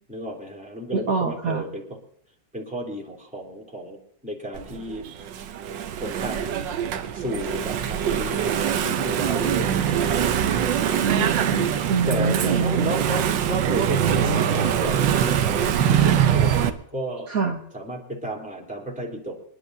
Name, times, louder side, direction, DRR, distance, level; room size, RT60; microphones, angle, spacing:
voice 1, 0.1-2.0 2.5-4.0 4.2-5.1 6.0-6.5 7.1-10.1 12.0-17.3 17.7-19.4, equal, 5° right, -2 dB, 3.3 m, -32 dB
voice 2, 0.9-1.6 11.0-12.9 17.3-17.6, right 5 dB, 55° right, 1 dB, 1.6 m, -25 dB
Engine / Mechanisms, 4.5-16.7, right 9 dB, 85° right, 1.5 m, -23 dB
26.0 x 11.5 x 2.7 m, 0.66 s
omnidirectional pair, 1.9 m